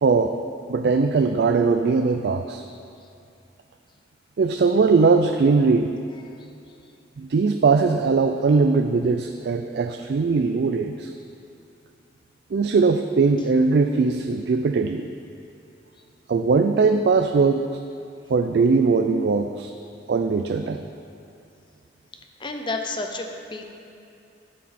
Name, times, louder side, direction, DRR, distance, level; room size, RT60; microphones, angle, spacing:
voice 1, 0.0-0.4 0.7-2.6 4.4-5.9 7.2-11.1 12.5-15.1 16.3-17.7 18.3-19.7 20.1-20.8, right 4 dB, 60° right, 7 dB, 0.3 m, -20 dB
voice 2, 22.4-23.6, left 2 dB, 25° left, 4 dB, 0.6 m, -31 dB
13.0 x 6.3 x 4.2 m, 2.6 s
head